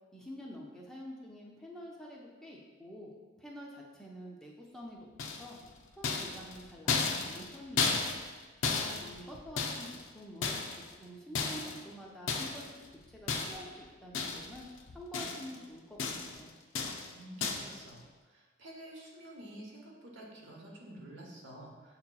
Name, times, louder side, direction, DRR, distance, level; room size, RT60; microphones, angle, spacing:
voice 1, 0.1-5.6 5.9-8.1 8.6-9.9 10.1-10.7 11.0-12.7 13.1-14.7 14.9-16.5, equal, 5° left, -3 dB, 0.4 m, -48 dB
sound 1, 5.2-5.6 6.0-8.4 8.6-10.1 10.4-10.9 11.4-11.8 12.3-12.7 13.3-13.8 14.1-14.6 14.9-15.6 16.0-16.4 16.8-17.1 17.4-17.8, left 4 dB, 75° left, 0.4 m, -34 dB
voice 2, 17.1-22.0, right 1 dB, 65° right, -2 dB, 0.9 m, -49 dB
6.6 x 2.9 x 2.2 m, 1.4 s
head